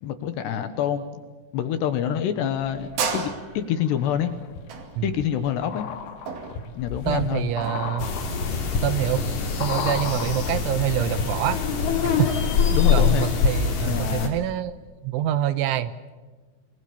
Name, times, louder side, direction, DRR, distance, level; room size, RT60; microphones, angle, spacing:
voice 1, 0.0-1.2 1.5-4.4 5.0-5.9 6.8-7.5 12.7-13.3 13.8-14.4, left 9 dB, 70° left, 10 dB, 3.0 m, -26 dB
sound 1, 2.5-7.9, right 5 dB, 55° right, 3.9 m, -33 dB
sound 2, 2.6-3.3 3.8-11.7 11.9-12.0, left 6 dB, 85° left, 4.1 m, -35 dB
voice 2, 7.1-8.1 8.8-9.2 9.6-11.6 12.2-12.3 12.7-14.7 15.0-15.9, right 11 dB, 80° right, 14 dB, 3.2 m, -25 dB
sound 3, 8.0-14.3, left 6 dB, 40° left, 3.6 m, -24 dB
28.5 x 20.0 x 7.1 m, 1.4 s
omnidirectional pair, 5.8 m